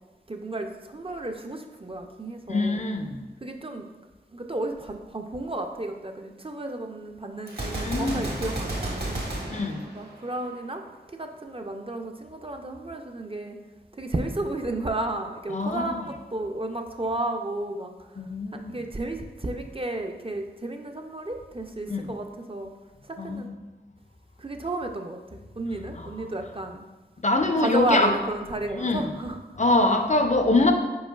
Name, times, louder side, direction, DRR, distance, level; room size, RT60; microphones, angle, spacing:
voice 1, 0.3-2.9 3.4-3.9 4.3-9.4 9.9-10.8 11.1-13.6 14.0-18.2 18.5-22.7 23.1-23.6 24.4-26.9 27.6-30.0, right 2 dB, 30° right, 4 dB, 0.4 m, -32 dB
voice 2, 2.5-3.2 7.8-8.2 9.5-9.9 15.5-15.9 18.2-18.7 21.9-22.1 23.2-23.5 27.2-28.1 28.7-29.1 29.6-30.7, left 2 dB, 40° left, 5 dB, 0.4 m, -24 dB
Gunshot gunfire, 7.5-10.6, right 1 dB, 60° right, 1.1 m, -32 dB
5.3 x 4.4 x 2.3 m, 1.2 s
wide cardioid pair, 50°, 19 cm